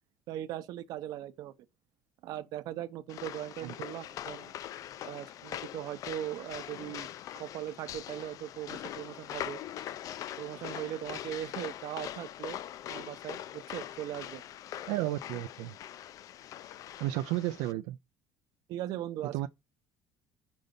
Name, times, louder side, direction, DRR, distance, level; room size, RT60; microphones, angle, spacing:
voice 1, 0.3-1.5 2.2-4.6 5.0-7.1 7.4-9.6 10.4-12.6 12.9-14.4 18.7-19.5, right 12 dB, 65° right, 0.7 m, -39 dB
sound 1, 3.1-17.7, left 11 dB, 55° left, 0.4 m, -42 dB
voice 2, 14.9-15.7 17.0-18.0 19.3-19.5, right 16 dB, 85° right, 0.4 m, -32 dB
5.4 x 3.9 x 5.3 m
cardioid pair, 110°, 7 cm